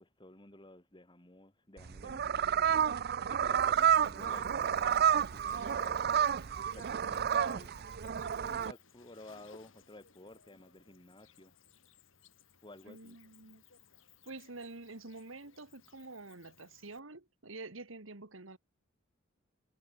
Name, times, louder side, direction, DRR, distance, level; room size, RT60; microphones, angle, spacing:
voice 1, 0.0-7.9 8.1-11.5 12.6-13.2, left 1 dB, 25° left, 3.7 m, -54 dB
sound 1, 1.8-8.7, right 8 dB, 50° right, 0.5 m, -30 dB
Cricket, 3.5-17.0, left 7 dB, 75° left, 7.3 m, -62 dB
voice 2, 12.9-13.6 14.2-18.6, right 3 dB, 85° right, 2.0 m, -48 dB
head